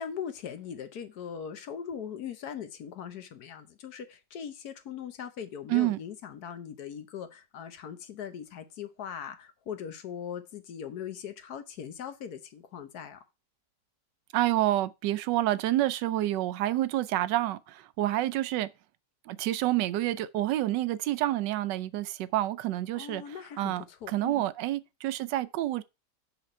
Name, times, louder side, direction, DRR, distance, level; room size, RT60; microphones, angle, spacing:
voice 1, 0.0-13.2 22.9-24.5, left 8 dB, 65° left, 1.3 m, -40 dB
voice 2, 14.3-18.7 19.3-25.8, right 14 dB, 85° right, 1.2 m, -28 dB
5.9 x 5.8 x 4.3 m
omnidirectional pair, 1.9 m